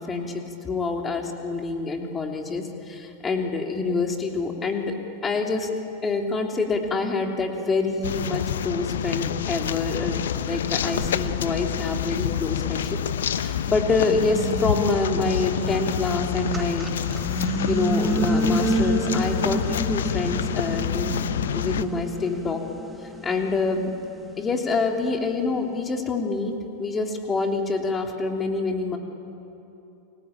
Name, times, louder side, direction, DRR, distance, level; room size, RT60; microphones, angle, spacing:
voice 1, 0.0-5.0 5.2-5.7 6.0-13.0 13.3-16.9 17.3-22.6 23.0-23.9 24.4-26.5 26.8-29.0, left 3 dB, 20° left, 3 dB, 3.3 m, -26 dB
sound 1, 8.0-21.8, left 9 dB, 60° left, 1.0 m, -28 dB
sound 2, 10.2-10.3 10.9-13.2 13.7-25.0, right 2 dB, 10° right, 2.0 m, -30 dB
sound 3, 16.3-21.2, left 4 dB, 45° left, 4.0 m, -45 dB
29.5 x 22.5 x 8.9 m, 2.9 s
figure-of-eight pair, 90°, 0 cm